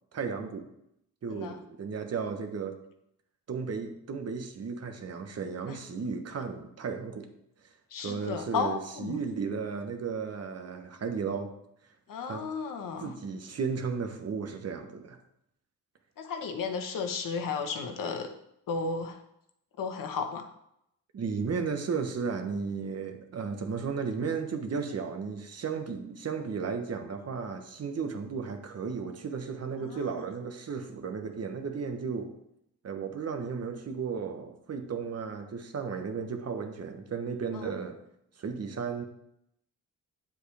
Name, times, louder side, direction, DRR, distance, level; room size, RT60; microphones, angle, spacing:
voice 1, 0.1-0.7 1.2-2.8 3.5-7.3 8.0-11.5 12.3-12.4 13.0-15.2 21.1-32.3 32.8-38.0 38.4-39.0, right 5 dB, 45° right, 6 dB, 1.3 m, -34 dB
voice 2, 7.9-9.2 12.1-13.1 16.2-18.3 18.7-19.2 19.8-20.5 29.8-30.2 37.5-37.7, left 5 dB, 70° left, 6 dB, 1.3 m, -34 dB
9.2 x 7.5 x 3.5 m, 0.77 s
cardioid pair, 110°, 34 cm